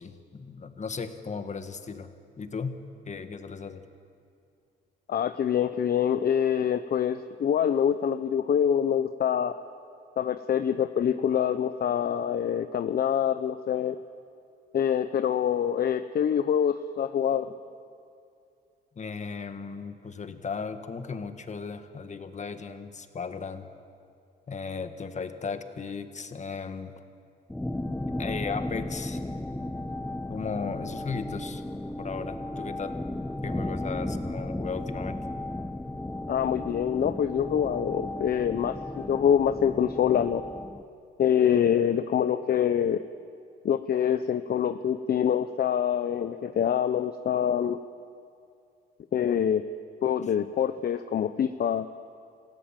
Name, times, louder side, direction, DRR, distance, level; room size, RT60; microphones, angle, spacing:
voice 1, 0.0-2.1 2.4-2.8 3.1-3.9 19.0-23.7 24.5-26.9 28.1-29.2 30.3-31.6 32.0-33.0 33.4-35.2, left 5 dB, 35° left, 8 dB, 1.7 m, -36 dB
voice 2, 5.1-9.5 10.2-14.0 14.7-17.5 36.3-40.4 41.2-43.0 43.6-47.8 49.1-49.6 50.0-51.9, left 9 dB, 50° left, 11 dB, 0.8 m, -25 dB
sound 1, 27.5-40.8, left 1 dB, 5° left, 0.9 m, -35 dB
27.5 x 16.5 x 7.6 m, 2.5 s
cardioid pair, 90°, 20 cm